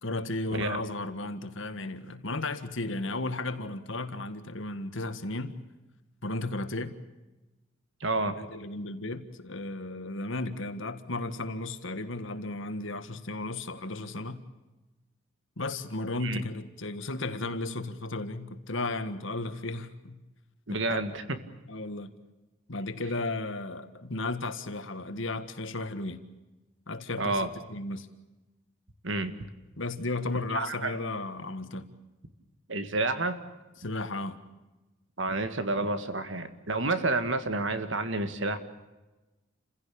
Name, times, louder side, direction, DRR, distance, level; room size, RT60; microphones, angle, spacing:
voice 1, 0.0-5.6 6.2-7.0 8.2-14.4 15.6-20.2 20.7-21.0 21.7-22.1 22.7-26.2 26.9-28.1 29.8-31.9 33.8-34.4, left 2 dB, 70° left, 10 dB, 1.7 m, -34 dB
voice 2, 0.5-0.8 8.0-8.4 16.2-16.4 20.7-21.4 27.2-27.5 29.0-29.3 30.5-31.0 32.7-33.4 35.2-38.6, right 2 dB, 65° right, 10 dB, 1.9 m, -29 dB
29.0 x 16.0 x 8.6 m, 1.1 s
head